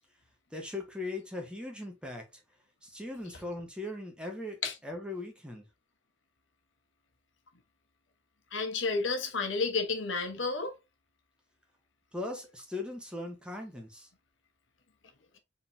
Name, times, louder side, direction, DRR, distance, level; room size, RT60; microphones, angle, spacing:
voice 1, 0.5-2.4 2.8-5.7 12.1-14.1, left 2 dB, 5° right, 1.2 m, -39 dB
voice 2, 8.5-10.8, left 4 dB, 90° left, 1.2 m, -31 dB
4.8 x 3.9 x 2.8 m
head